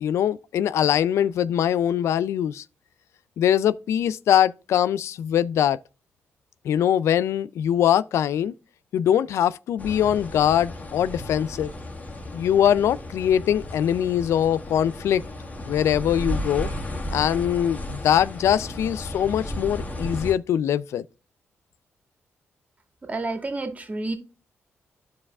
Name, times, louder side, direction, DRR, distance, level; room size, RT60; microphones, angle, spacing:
voice 1, 0.0-2.6 3.4-5.8 6.6-8.5 8.9-11.7 12.3-15.2 15.6-16.7 17.1-21.0, left 10 dB, 80° left, 0.3 m, -22 dB
sound 1, 9.8-20.3, left 1 dB, 30° left, 1.7 m, -34 dB
voice 2, 23.0-24.1, right 2 dB, 30° right, 2.0 m, -30 dB
12.0 x 4.8 x 2.3 m
cardioid pair, 70°, 5 cm